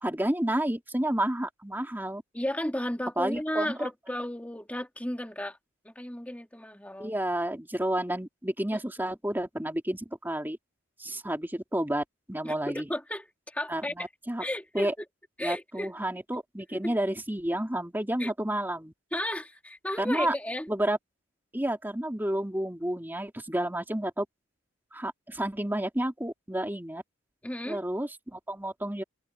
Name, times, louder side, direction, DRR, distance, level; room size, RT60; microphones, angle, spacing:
voice 1, 0.0-2.2 3.2-3.9 7.0-10.6 11.0-12.9 13.7-14.4 14.7-14.9 15.4-18.9 20.0-20.3 20.7-21.0 21.5-24.3 24.9-27.0 27.7-29.0, right 1 dB, 10° right, 2.7 m, -30 dB
voice 2, 2.3-5.6 5.8-7.2 8.7-8.8 12.4-14.1 14.4-15.1 15.4-15.9 16.8-16.9 18.2-18.3 19.1-20.7 27.4-27.8, left 1 dB, 5° left, 2.6 m, -34 dB
open air
head